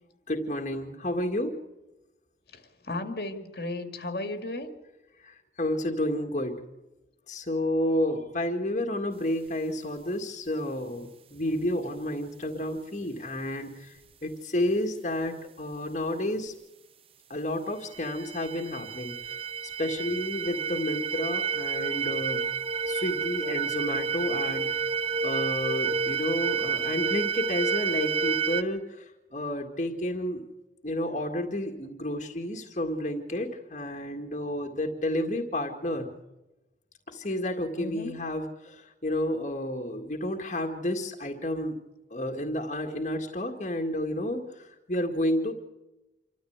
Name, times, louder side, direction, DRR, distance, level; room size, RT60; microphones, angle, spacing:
voice 1, 0.3-1.6 5.2-6.6 7.3-16.5 17.3-19.4 19.8-22.4 22.9-24.7 25.2-29.0 29.3-30.4 30.8-36.1 37.1-41.8 42.1-45.5, left 1 dB, 40° left, 2 dB, 2.0 m, -31 dB
voice 2, 2.8-4.7 37.8-38.2, left 2 dB, 60° left, 7 dB, 2.2 m, -34 dB
sound 1, 17.9-28.6, right 6 dB, 30° right, 0.8 m, -30 dB
27.0 x 13.5 x 8.1 m, 1.0 s
head